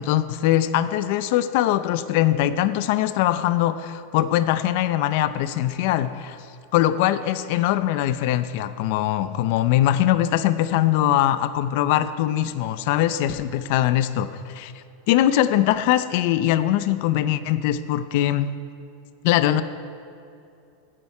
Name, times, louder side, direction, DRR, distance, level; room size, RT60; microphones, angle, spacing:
voice 1, 0.0-6.4 6.7-14.7 15.1-18.5 19.2-19.6, left 12 dB, 55° left, 13 dB, 0.6 m, -22 dB
15.0 x 9.9 x 4.8 m, 2.7 s
supercardioid pair, 155°, 0 cm